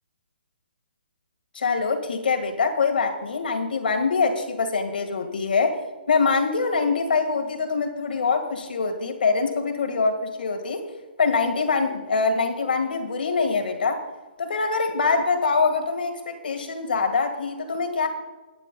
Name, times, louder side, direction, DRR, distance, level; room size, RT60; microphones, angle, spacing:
voice 1, 1.5-10.8 11.2-14.0 14.4-18.1, left 4 dB, 65° left, 5 dB, 1.6 m, -24 dB
23.0 x 9.7 x 2.2 m, 1.2 s
hypercardioid pair, 175°, 6 cm